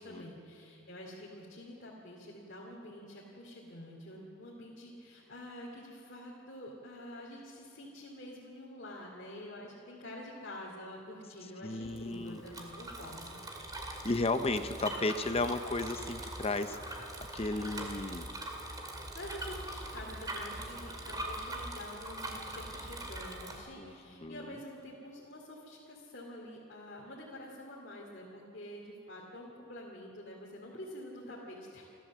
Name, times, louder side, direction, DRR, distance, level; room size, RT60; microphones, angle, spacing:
voice 1, 0.0-13.4 19.1-31.8, left 1 dB, 50° left, -3 dB, 2.6 m, -47 dB
voice 2, 11.6-12.4 14.0-18.3 23.8-23.9 24.2-24.6, left 2 dB, 30° left, 9 dB, 0.8 m, -34 dB
Bicycle, 11.8-23.6, right 1 dB, 20° right, 2.3 m, -42 dB
29.0 x 12.5 x 7.4 m, 2.8 s
head